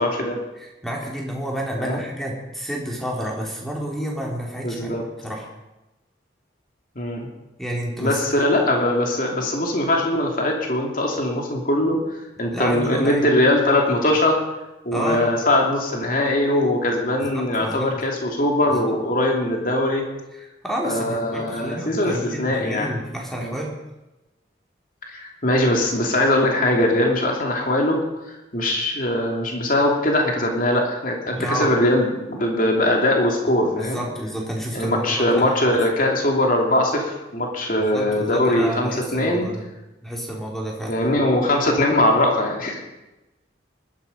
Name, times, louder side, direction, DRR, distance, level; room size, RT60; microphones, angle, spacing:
voice 1, 0.0-0.4 1.8-2.0 4.6-5.0 7.0-7.3 8.0-14.4 14.8-20.0 20.8-22.9 23.4-23.5 25.1-28.0 28.5-34.0 34.7-39.5 40.9-42.8, left 1 dB, 45° left, 0 dB, 2.8 m, -21 dB
voice 2, 0.6-4.9 5.2-5.5 7.6-8.2 12.5-13.3 14.9-15.2 17.2-17.9 18.7-18.8 20.3-23.7 31.3-31.7 33.6-35.8 37.8-39.6 40.0-40.9, equal, ahead, -1 dB, 3.3 m, -30 dB
20.0 x 12.5 x 5.3 m, 1.0 s
head